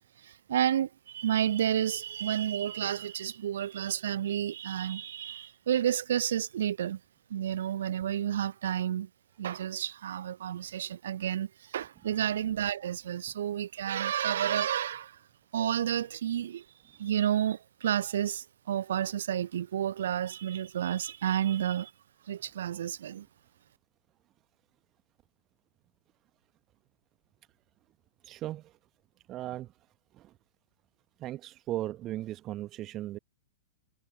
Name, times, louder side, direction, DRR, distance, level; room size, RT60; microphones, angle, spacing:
voice 1, 0.2-7.0 7.3-9.1 9.4-15.2 15.5-21.9 22.3-23.3, right 10 dB, 60° right, 0.5 m, -31 dB
voice 2, 28.2-28.8 29.3-29.7 30.1-30.3 31.2-33.2, right 14 dB, 30° right, 1.0 m, -37 dB
figure-of-eight pair, 100°, 0 cm